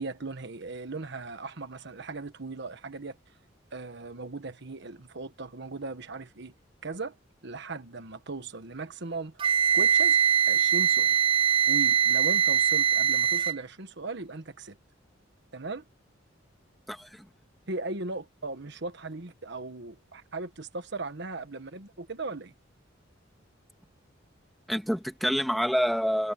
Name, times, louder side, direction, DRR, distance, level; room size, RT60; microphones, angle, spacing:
voice 1, 0.0-3.2 3.7-6.5 6.8-7.1 7.4-9.3 9.7-10.2 10.5-11.2 11.7-14.8 15.5-15.8 17.7-22.5, right 3 dB, 65° right, 1.4 m, -38 dB
Wind instrument woodwind instrument, 9.4-13.6, right 8 dB, 25° right, 0.3 m, -22 dB
voice 2, 16.9-17.3 24.7-26.3, equal, ahead, 2.1 m, -27 dB
head